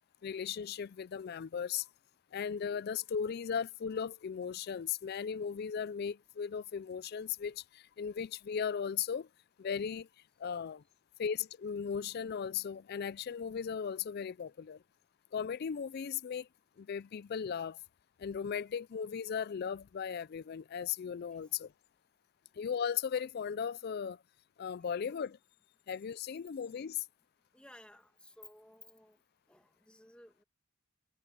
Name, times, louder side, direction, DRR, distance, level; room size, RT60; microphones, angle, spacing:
voice 1, 0.2-1.9 2.3-9.3 9.6-10.1 10.4-10.8 11.2-14.8 15.3-16.5 16.8-17.8 18.2-21.7 22.6-24.2 24.6-25.4 25.9-27.0, left 7 dB, 45° left, 0.3 m, -37 dB
voice 2, 27.5-29.2 29.5-30.4, left 1 dB, 5° left, 1.9 m, -57 dB
head